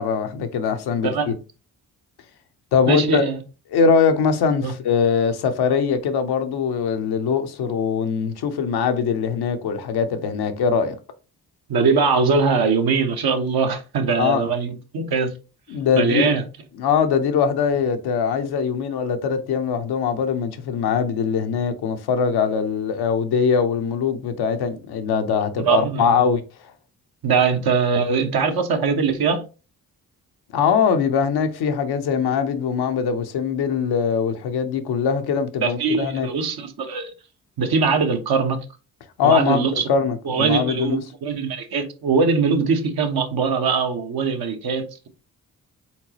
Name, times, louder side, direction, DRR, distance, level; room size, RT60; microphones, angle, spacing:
voice 1, 0.0-1.3 2.7-3.3 3.7-11.0 14.2-14.5 15.7-16.3 16.8-26.4 30.5-36.3 39.2-41.0, left 6 dB, 85° left, 0.8 m, -22 dB
voice 2, 1.0-1.3 2.9-3.4 4.6-4.7 11.7-15.3 15.9-16.4 25.6-26.2 27.2-29.4 35.6-37.1 37.6-38.6 39.2-39.8 40.2-45.1, right 5 dB, 70° right, 1.0 m, -21 dB
4.4 x 3.8 x 2.9 m
cardioid pair, 55°, 38 cm